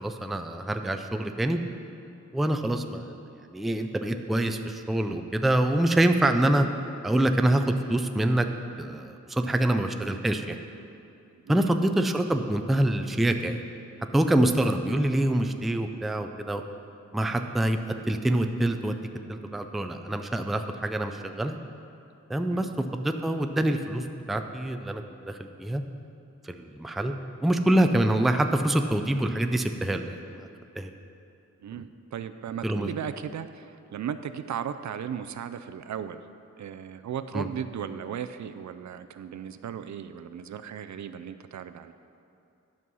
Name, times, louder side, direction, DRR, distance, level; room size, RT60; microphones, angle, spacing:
voice 1, 0.0-1.6 2.3-3.1 3.5-6.7 7.0-8.5 8.8-10.6 11.5-13.6 14.1-16.6 17.1-19.0 19.3-21.6 22.3-25.8 26.4-27.1 27.4-30.5 30.8-30.9 32.6-32.9 37.3-37.5, right 1 dB, ahead, 6 dB, 0.3 m, -25 dB
voice 2, 11.4-11.8 22.5-22.7 31.6-36.2 36.6-41.9, right 8 dB, 70° right, 11 dB, 0.4 m, -36 dB
11.0 x 5.5 x 6.1 m, 2.6 s
wide cardioid pair, 175°, 30 cm